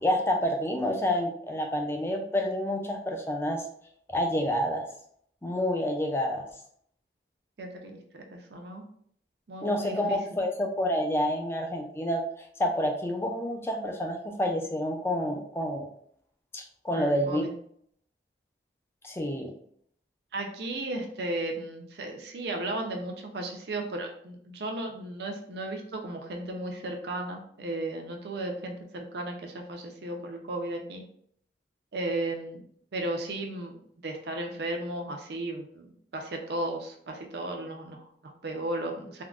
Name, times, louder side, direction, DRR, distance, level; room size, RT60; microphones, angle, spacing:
voice 1, 0.0-3.7 4.1-4.9 5.4-6.5 9.6-15.9 16.5-17.4 19.0-19.5, left 1 dB, 15° left, 2 dB, 0.3 m, -28 dB
voice 2, 7.6-8.9 9.5-10.2 16.9-17.5 20.3-31.0 31.9-32.6 32.9-39.2, right 2 dB, 65° right, 3 dB, 0.5 m, -35 dB
3.5 x 2.1 x 2.4 m, 0.65 s
head